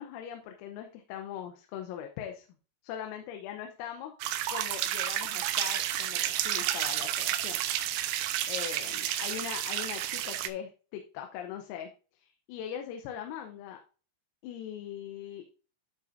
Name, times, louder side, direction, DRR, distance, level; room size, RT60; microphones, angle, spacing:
voice 1, 0.0-2.5 2.8-4.2 4.5-8.2 8.5-11.9 12.2-13.8 14.4-15.5, left 9 dB, 85° left, 4 dB, 3.6 m, -41 dB
sound 1, 4.2-10.5, right 12 dB, 80° right, 2.8 m, -31 dB
12.5 x 5.6 x 2.6 m, 0.35 s
omnidirectional pair, 5.9 m